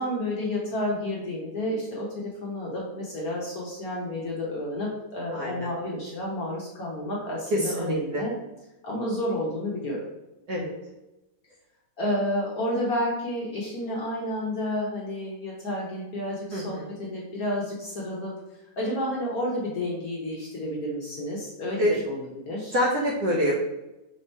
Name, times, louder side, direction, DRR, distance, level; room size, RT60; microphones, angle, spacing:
voice 1, 0.0-8.3 8.8-10.0 12.0-22.2 22.4-22.8, left 1 dB, 60° left, -4 dB, 1.0 m, -30 dB
voice 2, 5.3-5.7 7.5-8.2 10.5-10.7 16.5-16.9 21.8-22.0 22.7-23.6, equal, 65° right, -3 dB, 1.0 m, -26 dB
3.5 x 2.8 x 4.3 m, 0.97 s
omnidirectional pair, 2.2 m